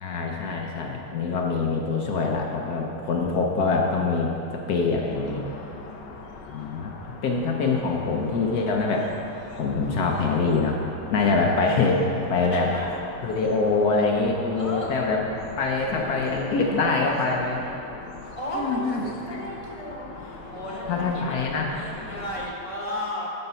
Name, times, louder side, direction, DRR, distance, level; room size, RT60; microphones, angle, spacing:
voice 1, 0.0-5.4 6.5-6.9 7.2-9.1 9.6-10.8 11.1-12.0 12.3-12.7 13.2-15.2 15.6-17.6 18.5-19.0 19.3-19.5 20.9-21.7, left 4 dB, 70° left, 0 dB, 1.2 m, -24 dB
sound 1, 5.1-22.5, left 4 dB, 85° left, 1.4 m, -42 dB
voice 2, 5.4-6.4 11.2-11.6 12.4-12.9 14.5-14.9 15.8-17.8 18.3-23.3, equal, 20° left, -3 dB, 1.1 m, -36 dB
11.0 x 4.4 x 5.5 m, 2.8 s
omnidirectional pair, 1.9 m